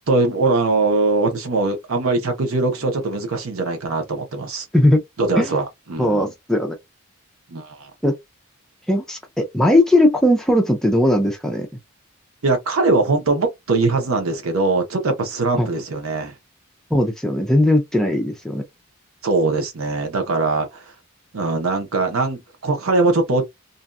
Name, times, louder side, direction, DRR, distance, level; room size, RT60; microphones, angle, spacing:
voice 1, 0.1-4.7 5.2-5.6 5.9-6.3 7.5-7.9 12.4-16.3 19.2-20.8 21.3-23.4, right 3 dB, 90° right, 0.8 m, -21 dB
voice 2, 6.0-6.8 8.0-8.1 8.9-11.7 15.6-15.7 16.9-18.6, left 1 dB, 5° left, 0.4 m, -18 dB
2.6 x 2.2 x 2.4 m
head